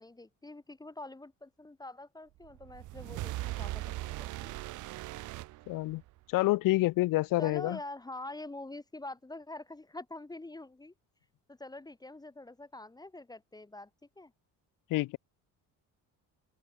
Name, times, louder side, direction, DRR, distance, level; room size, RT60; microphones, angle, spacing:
voice 1, 0.0-4.6 7.4-10.9 11.5-13.9 14.2-14.3, left 2 dB, 10° left, 1.4 m, -45 dB
sound 1, 2.4-6.2, right 18 dB, 60° right, 0.5 m, -39 dB
voice 2, 5.7-6.0 6.3-7.8 14.9-15.2, left 18 dB, 70° left, 0.6 m, -28 dB
open air
cardioid pair, 120°, 34 cm